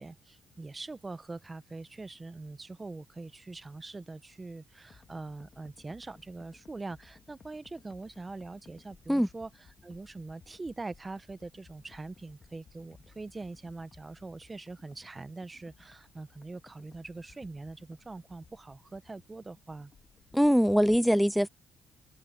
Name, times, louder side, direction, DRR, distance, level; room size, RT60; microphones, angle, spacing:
voice 1, 0.0-9.5 9.8-19.9, right 3 dB, 25° right, 0.9 m, -43 dB
sound 1, 4.9-20.9, left 5 dB, 45° left, 2.1 m, -60 dB
voice 2, 20.3-21.5, equal, ahead, 0.3 m, -23 dB
open air
cardioid pair, 90°, 0 cm